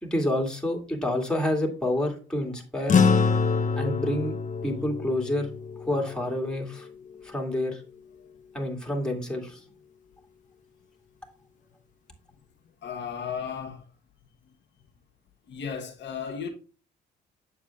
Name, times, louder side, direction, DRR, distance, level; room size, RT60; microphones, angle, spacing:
voice 1, 0.0-3.0 3.8-4.4 4.6-5.5 5.8-6.9 7.2-7.8 8.5-9.6, left 1 dB, 5° left, 2.4 m, -28 dB
sound 1, 2.9-7.5, left 5 dB, 40° left, 0.9 m, -26 dB
voice 2, 12.8-13.9 15.5-16.5, left 7 dB, 65° left, 1.3 m, -34 dB
7.8 x 7.0 x 2.4 m
cardioid pair, 90°, 20 cm